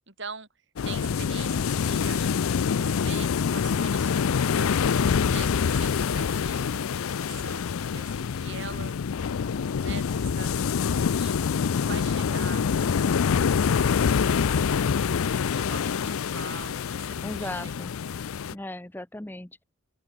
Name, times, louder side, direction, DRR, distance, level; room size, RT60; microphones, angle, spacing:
voice 1, 0.1-0.5 0.8-4.7 5.3-9.0 9.7-13.9 14.4-14.9 15.7-17.8 18.0-18.2, right 5 dB, 55° right, 3.3 m, -43 dB
sound 1, 0.8-18.5, left 6 dB, 75° left, 0.4 m, -26 dB
voice 2, 17.2-17.9 18.5-19.6, left 1 dB, 10° left, 0.6 m, -37 dB
open air
head